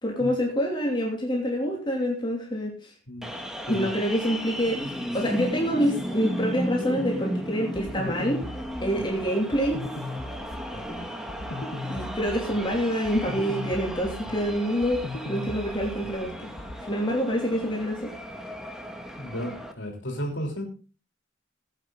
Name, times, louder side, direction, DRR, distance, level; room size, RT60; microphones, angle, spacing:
voice 1, 0.0-2.9 3.7-8.4 8.8-9.8 10.7-11.1 11.6-16.5 16.8-18.1, equal, 25° left, -1 dB, 2.9 m, -27 dB
sound 1, 3.2-19.7, equal, 5° right, 2.2 m, -35 dB
sound 2, 7.7-16.8, left 2 dB, 65° left, 1.5 m, -38 dB
voice 2, 19.2-20.6, equal, 85° left, 1 dB, 3.4 m, -33 dB
17.5 x 9.5 x 4.0 m, 0.35 s
head